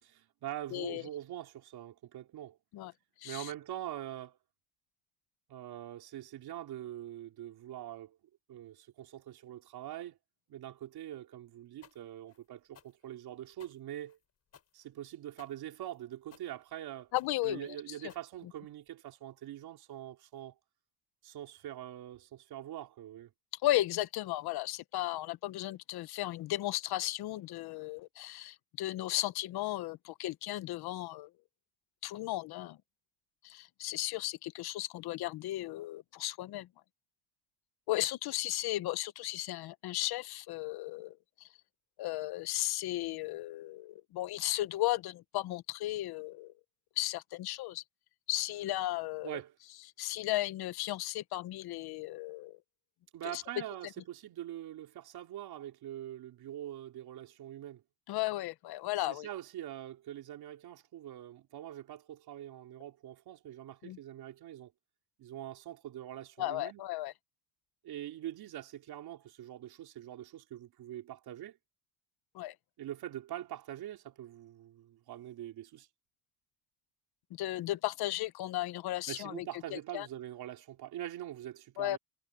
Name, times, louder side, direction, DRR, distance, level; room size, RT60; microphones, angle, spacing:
voice 1, 0.0-2.6 3.2-4.4 5.5-8.2 8.5-10.2 10.5-14.2 14.7-17.1 17.4-20.5 21.2-23.3 49.2-49.6 53.1-57.8 59.1-64.7 65.2-66.8 67.8-71.6 72.8-75.9 79.1-82.0, right 12 dB, 50° right, 3.7 m, -44 dB
voice 2, 0.7-1.0 2.7-2.9 3.2-3.5 17.1-17.8 23.6-31.3 32.0-32.8 33.4-36.7 37.9-41.5 42.0-46.5 47.0-47.8 48.3-49.4 50.0-52.6 53.2-53.4 58.1-59.3 63.8-64.0 66.4-67.1 72.3-72.5 77.3-79.5 79.7-80.1 81.8-82.0, left 16 dB, 55° left, 0.9 m, -35 dB
walking on the gravel, 11.8-18.9, left 8 dB, 30° left, 5.7 m, -61 dB
cardioid pair, 165°, 46 cm